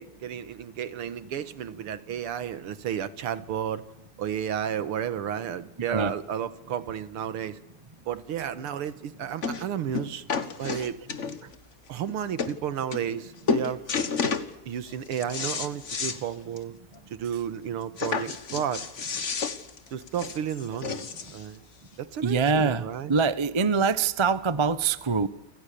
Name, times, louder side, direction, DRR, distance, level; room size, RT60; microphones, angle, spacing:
voice 1, 0.0-3.8 4.2-7.6 8.1-10.2 10.6-11.0 11.9-13.8 14.7-16.7 17.1-18.9 19.9-21.1 21.3-21.6 22.0-23.2, right 9 dB, 85° right, 14 dB, 2.2 m, -32 dB
sound 1, 8.7-8.8 9.4-9.7 9.9-11.6 12.1-12.2 12.4-12.6 12.9-13.2 13.5-14.5 14.9-16.2 16.6-16.7 17.0-17.1 18.0-21.4 22.3-22.4, left 5 dB, 35° left, 1.6 m, -30 dB
voice 2, 22.2-25.3, right 5 dB, 35° right, 15 dB, 0.4 m, -24 dB
29.0 x 26.0 x 6.9 m, 0.87 s
omnidirectional pair, 2.4 m